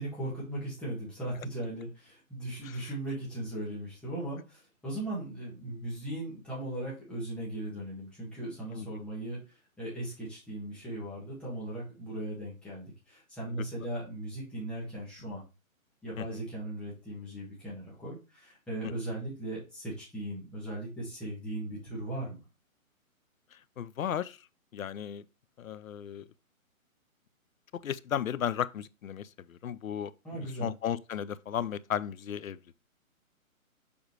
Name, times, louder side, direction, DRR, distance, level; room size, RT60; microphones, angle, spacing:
voice 1, 0.0-9.4 9.8-15.4 16.0-22.4 30.2-30.7, right 1 dB, ahead, 1.6 m, -38 dB
voice 2, 23.5-24.4 24.7-25.2 25.6-26.3 27.8-30.1 30.6-32.6, left 9 dB, 75° left, 0.6 m, -35 dB
7.0 x 5.1 x 3.2 m
hypercardioid pair, 165°, 42 cm